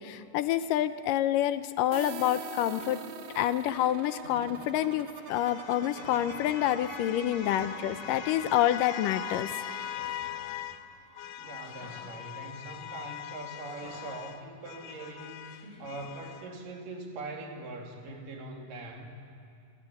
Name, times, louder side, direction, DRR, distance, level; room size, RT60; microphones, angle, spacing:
voice 1, 0.0-3.0 3.4-9.6, left 12 dB, 90° left, 12 dB, 2.5 m, -28 dB
sound 1, 1.9-11.5, right 7 dB, 65° right, 2.5 m, -45 dB
sound 2, 4.2-10.8 11.2-16.5, left 11 dB, 70° left, 2.1 m, -41 dB
sound 3, 4.2-4.5 5.7-6.6 7.3-7.4 7.7-8.2 9.8-10.6 11.6-12.1 13.6-14.3 15.4-16.1, equal, 20° right, 7.4 m, -51 dB
voice 2, 11.4-15.5 15.8-19.1, right 2 dB, 85° right, 2 dB, 4.3 m, -42 dB
27.5 x 22.5 x 8.6 m, 2.4 s
omnidirectional pair, 3.8 m